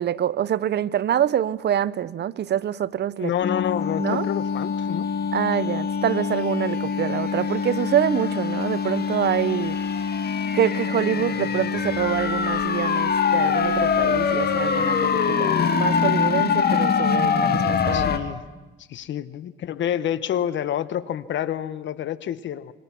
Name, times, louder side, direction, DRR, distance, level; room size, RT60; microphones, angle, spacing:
voice 1, 0.0-3.3 4.0-4.3 5.3-9.8 10.5-18.1, right 10 dB, 60° right, 0.8 m, -25 dB
voice 2, 3.2-5.1 17.9-18.4 18.9-22.7, left 10 dB, 70° left, 1.1 m, -28 dB
sound 1, 3.4-18.2, left 6 dB, 55° left, 2.0 m, -24 dB
27.0 x 24.5 x 6.0 m
cardioid pair, 90°, 20 cm